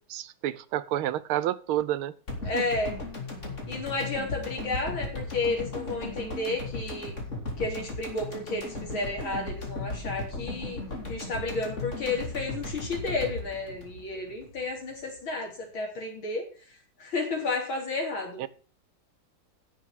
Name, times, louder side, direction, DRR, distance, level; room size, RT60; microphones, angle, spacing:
voice 1, 0.1-2.1 2.5-2.6 18.4-18.5, right 12 dB, 85° right, 17 dB, 1.6 m, -29 dB
sound 1, 2.3-14.6 14.9-15.0, left 2 dB, 35° left, 3.3 m, -36 dB
voice 2, 2.4-3.0 3.7-7.1 7.6-10.8 11.1-16.4 17.0-18.4, left 3 dB, 70° left, 1 dB, 4.4 m, -32 dB
10.5 x 7.3 x 6.5 m, 0.39 s
omnidirectional pair, 2.3 m